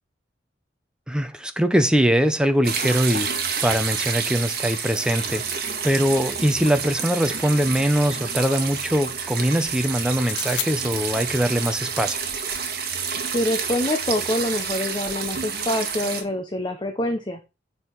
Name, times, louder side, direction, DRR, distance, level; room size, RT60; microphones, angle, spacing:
voice 1, 1.1-3.3 3.6-5.4 5.8-12.2, equal, 5° right, 0.9 m, -22 dB
sound 1, 2.6-16.2, right 6 dB, 60° right, 1.8 m, -29 dB
sound 2, 6.5-7.4 10.1-10.7, left 11 dB, 80° left, 0.9 m, -35 dB
voice 2, 13.3-17.4, left 1 dB, 25° left, 1.0 m, -25 dB
8.0 x 5.3 x 4.6 m
head